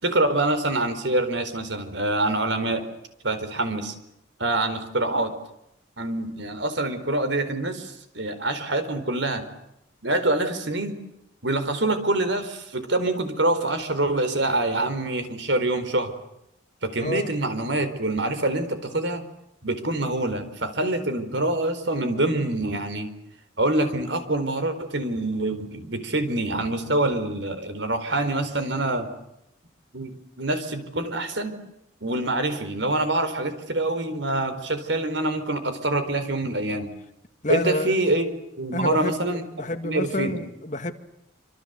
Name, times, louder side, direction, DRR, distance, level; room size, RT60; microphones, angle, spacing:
voice 1, 0.0-2.8 3.2-3.9 4.4-5.3 6.0-9.5 10.0-11.0 11.4-16.1 16.8-19.2 19.6-23.1 23.6-29.1 29.9-31.6 32.0-36.9 37.5-39.4 39.8-40.4, right 2 dB, 70° right, 4.3 m, -25 dB
voice 2, 37.4-37.9 38.7-40.9, left 1 dB, 40° left, 2.0 m, -28 dB
26.5 x 26.5 x 8.2 m
head